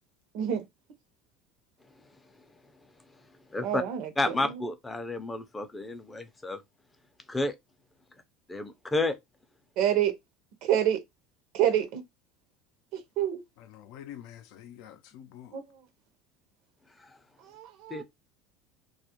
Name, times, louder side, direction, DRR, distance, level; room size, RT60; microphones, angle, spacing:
voice 1, 0.3-0.6 3.6-4.6 9.8-10.1 10.6-11.0 11.5-12.0 12.9-13.4 15.5-15.6 17.4-18.0, right 10 dB, 65° right, 0.6 m, -27 dB
voice 2, 3.5-3.8 4.2-6.6 7.3-7.5 8.5-9.2 17.9-18.0, left 2 dB, 15° left, 0.5 m, -30 dB
voice 3, 13.6-15.6, left 11 dB, 70° left, 0.4 m, -47 dB
2.3 x 2.0 x 2.8 m
supercardioid pair, 110°, 0 cm